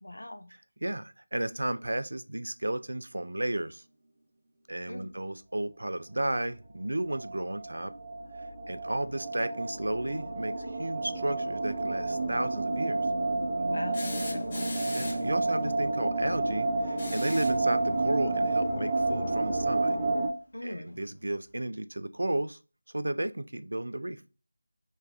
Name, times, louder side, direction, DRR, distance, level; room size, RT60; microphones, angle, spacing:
voice 1, 0.0-0.5 4.9-5.1 9.2-9.3 13.6-14.7 20.5-21.0, left 1 dB, 75° left, 0.5 m, -41 dB
voice 2, 0.8-3.8 4.7-7.9 8.7-13.0 14.9-20.0 20.6-22.6 22.9-24.2, right 1 dB, 65° right, 0.3 m, -33 dB
sound 1, 7.1-20.3, right 2 dB, 20° right, 0.8 m, -30 dB
sound 2, 13.9-15.4 16.9-17.7 19.3-19.4 20.9-21.0, left 2 dB, 25° left, 0.6 m, -40 dB
3.1 x 2.3 x 3.4 m
figure-of-eight pair, 170°, 0 cm